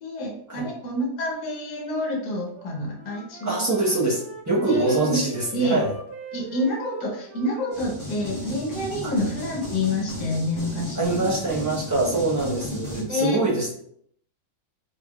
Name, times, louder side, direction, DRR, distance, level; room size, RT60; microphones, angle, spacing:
voice 1, 0.0-3.6 4.7-5.2 5.5-5.8 6.3-11.1 12.9-13.4, left 1 dB, 70° left, -1 dB, 1.6 m, -28 dB
Wind instrument woodwind instrument, 2.5-8.9, right 2 dB, 60° right, 0.6 m, -43 dB
voice 2, 3.4-5.9 9.0-9.1 10.9-13.7, right 2 dB, 15° right, -7 dB, 0.7 m, -24 dB
sound 1, 7.7-13.0, equal, 15° left, 1.1 m, -34 dB
3.7 x 3.4 x 2.3 m, 0.66 s
omnidirectional pair, 1.9 m